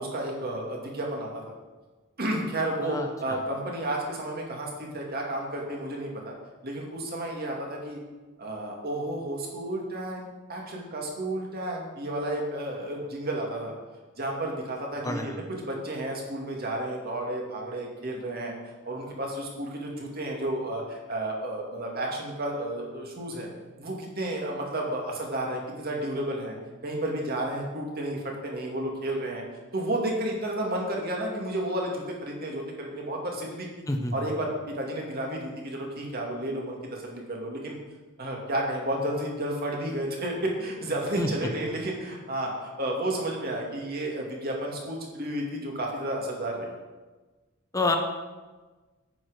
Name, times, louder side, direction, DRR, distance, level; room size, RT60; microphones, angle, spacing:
voice 1, 0.0-1.5 2.2-6.3 6.6-8.0 8.4-13.7 14.2-18.5 18.8-23.5 23.8-26.5 26.8-29.4 29.7-33.7 34.1-37.8 38.2-46.8, right 1 dB, 50° right, -1 dB, 2.4 m, -32 dB
voice 2, 2.8-3.4 15.0-15.4 33.9-34.3 41.2-41.3 47.7-48.0, left 2 dB, 15° left, 3 dB, 1.2 m, -28 dB
10.5 x 8.6 x 5.1 m, 1.3 s
head